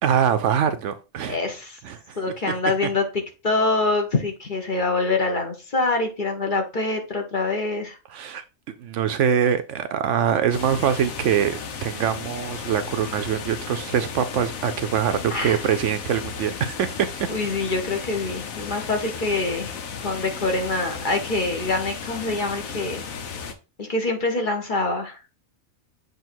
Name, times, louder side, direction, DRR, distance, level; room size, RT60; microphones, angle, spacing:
voice 1, 0.0-1.4 1.8-2.2 8.1-8.4 8.8-17.3, right 8 dB, 70° right, 0.9 m, -23 dB
voice 2, 1.2-1.8 2.2-3.0 3.4-8.0 15.3-15.6 17.3-19.8 20.0-23.0 23.8-25.2, left 3 dB, 40° left, 1.2 m, -25 dB
sound 1, 10.5-23.5, left 6 dB, 85° left, 1.3 m, -35 dB
7.7 x 2.8 x 4.4 m
omnidirectional pair, 1.4 m